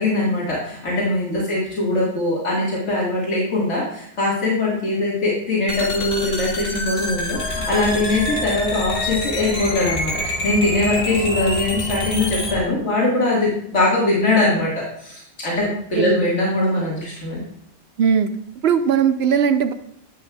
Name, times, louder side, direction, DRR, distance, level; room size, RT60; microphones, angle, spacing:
voice 1, 0.0-17.4, left 2 dB, 90° left, -6 dB, 2.2 m, -21 dB
sound 1, 5.7-12.5, left 1 dB, 55° left, 1.4 m, -27 dB
sound 2, 7.3-12.6, left 1 dB, 5° right, 1.2 m, -32 dB
voice 2, 15.7-16.2 18.0-18.3 18.6-19.7, right 7 dB, 65° right, 9 dB, 0.8 m, -19 dB
11.0 x 7.4 x 2.3 m, 0.70 s
omnidirectional pair, 1.2 m